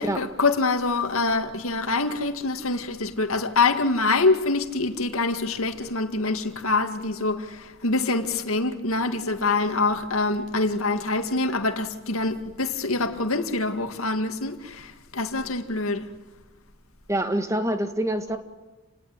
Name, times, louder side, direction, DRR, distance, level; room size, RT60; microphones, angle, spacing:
voice 1, 0.0-16.1, left 3 dB, 85° left, 2.2 m, -25 dB
voice 2, 17.1-18.4, right 1 dB, 15° right, 1.8 m, -25 dB
29.0 x 19.0 x 9.8 m
head